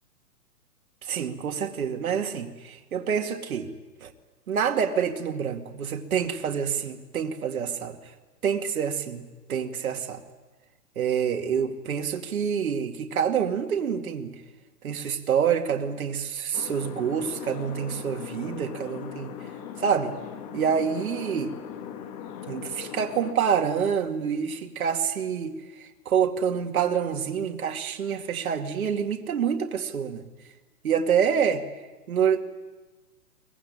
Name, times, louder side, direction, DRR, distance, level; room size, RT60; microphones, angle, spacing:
voice 1, 1.0-3.7 4.0-4.1 4.5-8.0 8.4-9.2 9.5-10.2 11.0-14.3 14.8-19.4 19.8-20.1 20.5-21.6 22.5-25.5 25.8-30.2 30.8-31.6 32.1-32.4, right 7 dB, 60° right, 2.3 m, -27 dB
sound 1, 16.5-23.3, left 8 dB, 25° left, 1.7 m, -39 dB
23.5 x 20.0 x 9.9 m
hypercardioid pair, 170°, 48 cm